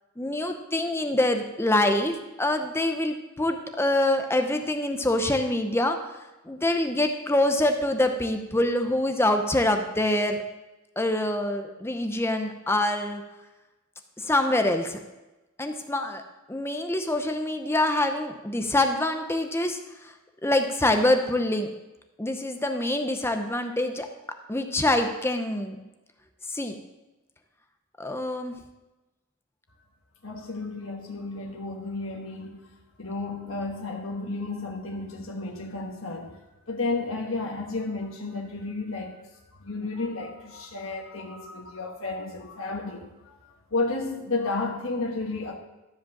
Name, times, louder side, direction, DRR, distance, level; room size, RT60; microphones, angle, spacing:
voice 1, 0.2-6.0 6.5-10.4 11.0-13.2 14.2-15.0 15.6-16.2 16.5-19.8 20.4-21.7 22.2-24.1 24.5-25.8 26.5-26.8 28.0-28.5, left 1 dB, 10° left, 6 dB, 0.7 m, -25 dB
voice 2, 30.2-32.7 33.0-36.4 36.7-45.5, left 3 dB, 75° left, 0 dB, 1.3 m, -32 dB
13.0 x 5.1 x 7.2 m, 1.1 s
head